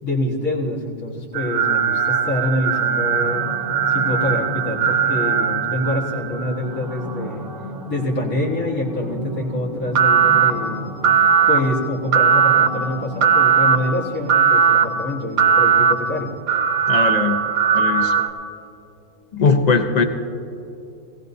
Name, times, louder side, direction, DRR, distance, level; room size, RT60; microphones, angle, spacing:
voice 1, 0.0-3.5 3.9-7.5 7.9-10.9 11.5-16.3, left 1 dB, 70° left, -3 dB, 2.1 m, -25 dB
sound 1, 1.3-6.7 10.0-10.5 11.0-11.6 12.1-12.7 13.2-13.8 14.3-14.9 15.4-15.9 16.5-18.3, right 6 dB, 75° right, 1.2 m, -18 dB
sound 2, 2.4-14.3, equal, ahead, 0.6 m, -35 dB
voice 2, 16.9-17.4 17.7-18.1 19.3-20.0, left 4 dB, 40° left, 6 dB, 0.6 m, -19 dB
18.5 x 17.0 x 2.7 m, 2.8 s
omnidirectional pair, 1.5 m